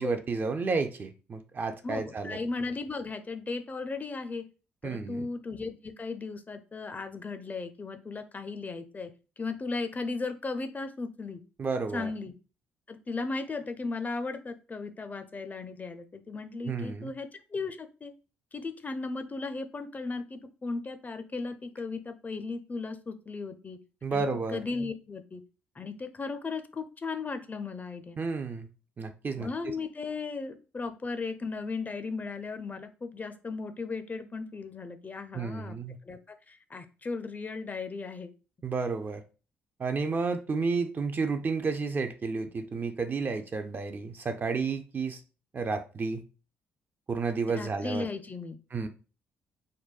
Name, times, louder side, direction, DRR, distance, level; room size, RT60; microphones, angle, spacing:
voice 1, 0.0-2.4 4.8-5.3 11.6-12.1 16.6-17.1 24.0-24.6 28.2-28.7 29.0-29.7 35.3-36.0 38.6-39.2 39.8-45.2 45.5-46.2 47.1-48.1 48.7-48.9, right 4 dB, 35° right, 0.4 m, -31 dB
voice 2, 1.8-4.4 4.8-9.1 9.4-11.4 11.9-12.3 12.9-18.1 18.5-23.8 24.1-25.4 25.8-28.2 29.3-35.8 36.1-36.2 36.5-38.3 47.5-48.6, left 4 dB, 30° left, 0.4 m, -36 dB
3.8 x 2.1 x 2.3 m
hypercardioid pair, 45°, 6 cm